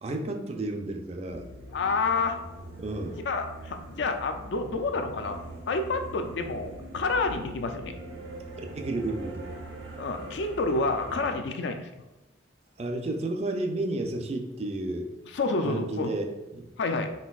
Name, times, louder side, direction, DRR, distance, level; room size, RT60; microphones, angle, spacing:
voice 1, 0.0-1.5 2.8-3.2 8.6-9.6 12.8-15.1 15.6-16.7, right 2 dB, 30° right, 4 dB, 0.3 m, -32 dB
sound 1, 1.3-11.4, right 1 dB, 80° right, 0.9 m, -42 dB
voice 2, 1.7-2.4 3.2-5.4 5.7-7.9 10.0-11.9 15.3-16.1 16.8-17.1, left 3 dB, 60° left, 6 dB, 0.4 m, -29 dB
4.3 x 3.8 x 2.3 m, 1.1 s
head